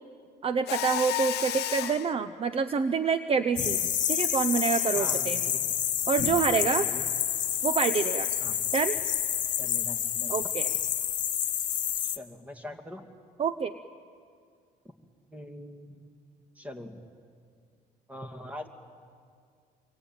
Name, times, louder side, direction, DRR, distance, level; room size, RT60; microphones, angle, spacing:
voice 1, 0.4-5.4 6.1-6.8 7.6-8.3 8.7-9.0 10.3-10.6 13.4-13.7, right 6 dB, 35° right, 11 dB, 0.8 m, -27 dB
Mechanisms, 0.7-2.1, left 13 dB, 80° left, 0.7 m, -31 dB
sound 1, 3.6-12.2, left 9 dB, 50° left, 1.2 m, -28 dB
voice 2, 4.9-5.8 6.5-7.1 8.4-8.6 9.6-10.4 11.9-13.1 15.3-16.1 16.6-17.0 18.1-18.7, left 1 dB, 10° right, 5 dB, 2.4 m, -43 dB
27.0 x 23.5 x 9.0 m, 2.2 s
cardioid pair, 110°, 17 cm